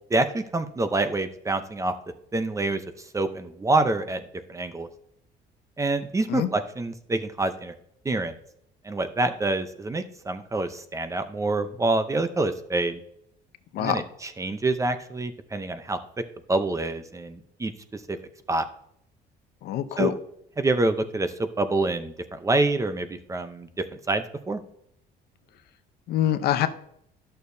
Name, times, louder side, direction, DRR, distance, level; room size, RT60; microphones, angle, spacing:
voice 1, 0.1-1.9 2.3-4.2 4.5-4.9 5.8-7.7 8.0-8.4 8.8-13.0 13.8-16.2 16.5-18.2 18.5-18.7 20.0-20.1 20.6-24.6, right 2 dB, 20° right, 10 dB, 0.7 m, -27 dB
voice 2, 13.7-14.0 19.6-20.1 26.1-26.7, left 11 dB, 70° left, 10 dB, 0.7 m, -24 dB
11.0 x 6.7 x 2.7 m, 0.71 s
cardioid pair, 110°, 17 cm